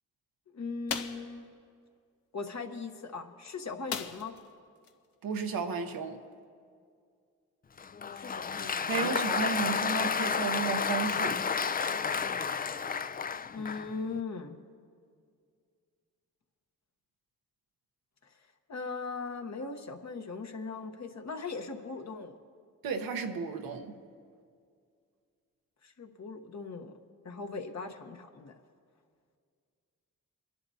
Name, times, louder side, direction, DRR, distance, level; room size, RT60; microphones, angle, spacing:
voice 1, 0.5-1.5 2.3-4.3 8.0-9.1 13.5-14.6 18.7-22.4 25.8-26.9 27.2-28.5, left 4 dB, 50° left, 1.1 m, -39 dB
sound 1, 0.9-1.3 3.9-4.5 4.8-4.9 5.3-5.5, left 7 dB, 90° left, 0.8 m, -36 dB
voice 2, 5.2-6.2 8.9-11.4 22.8-24.0, right 5 dB, 85° right, 1.0 m, -33 dB
Applause, 7.8-14.0, left 6 dB, 25° left, 0.4 m, -31 dB
25.0 x 10.5 x 2.8 m
cardioid pair, 50°, 34 cm